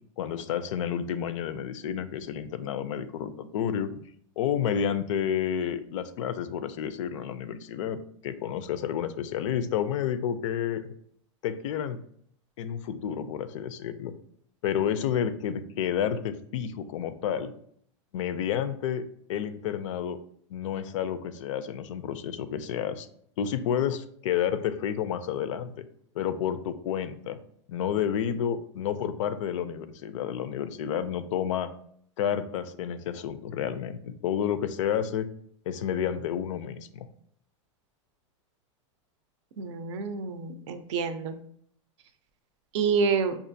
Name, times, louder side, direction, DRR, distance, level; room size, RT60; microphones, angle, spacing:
voice 1, 0.2-3.9 4.4-10.9 11.4-12.0 12.6-14.1 14.6-17.5 18.1-19.0 19.3-20.2 20.5-23.1 23.4-25.8 26.1-27.4 27.7-31.7 32.2-35.3 35.7-37.1, left 9 dB, 75° left, 12 dB, 0.4 m, -30 dB
voice 2, 39.6-41.4 42.7-43.4, right 5 dB, 65° right, 10 dB, 0.5 m, -28 dB
5.2 x 2.4 x 2.6 m, 0.65 s
supercardioid pair, 145°, 16 cm